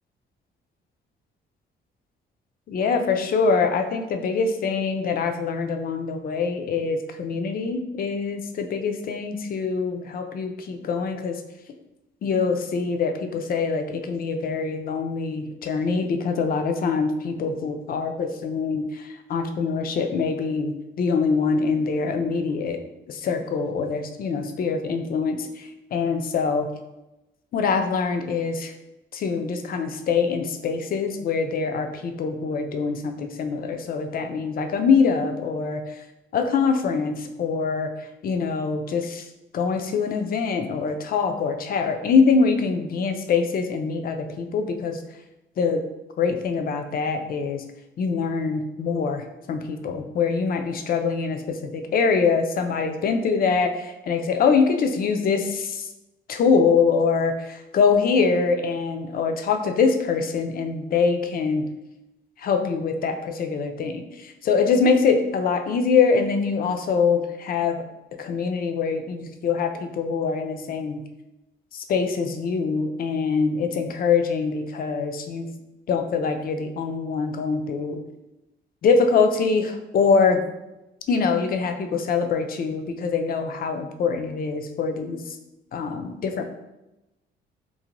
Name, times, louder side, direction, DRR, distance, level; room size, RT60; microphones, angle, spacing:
voice 1, 2.7-11.4 12.2-22.8 23.1-26.7 27.5-28.7 29.1-36.0 36.3-39.3 39.5-45.0 45.6-45.8 46.2-47.6 48.0-55.9 56.3-61.7 62.4-67.8 68.2-71.0 71.7-75.5 75.9-78.0 78.8-80.4 81.1-85.4 85.7-86.5, left 5 dB, 50° left, 6 dB, 0.4 m, -24 dB
2.6 x 2.1 x 2.9 m, 0.95 s
cardioid pair, 90°, 20 cm